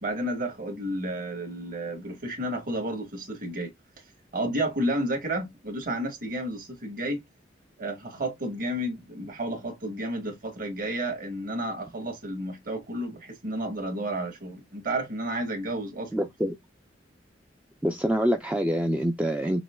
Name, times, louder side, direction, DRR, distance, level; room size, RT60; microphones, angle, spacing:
voice 1, 0.0-3.7 4.3-7.2 7.8-16.3, right 1 dB, 50° right, 1.7 m, -31 dB
voice 2, 16.1-16.6 17.8-19.6, equal, 10° right, 0.3 m, -25 dB
5.9 x 2.1 x 2.2 m
head